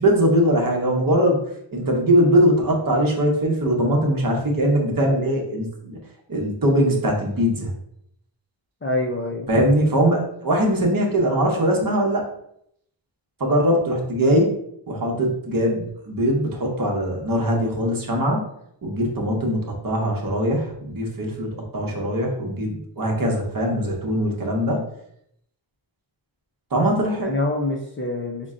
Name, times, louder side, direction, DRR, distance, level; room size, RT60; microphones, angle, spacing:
voice 1, 0.0-1.4 1.7-6.0 6.3-7.7 9.5-12.3 13.4-14.5 14.9-18.4 18.8-21.5 21.7-24.8 26.7-27.3, equal, 45° right, 0 dB, 0.9 m, -21 dB
voice 2, 8.8-9.5 27.2-28.5, left 2 dB, 30° left, -1 dB, 0.4 m, -26 dB
5.2 x 2.2 x 3.6 m, 0.72 s
wide cardioid pair, 180°, 46 cm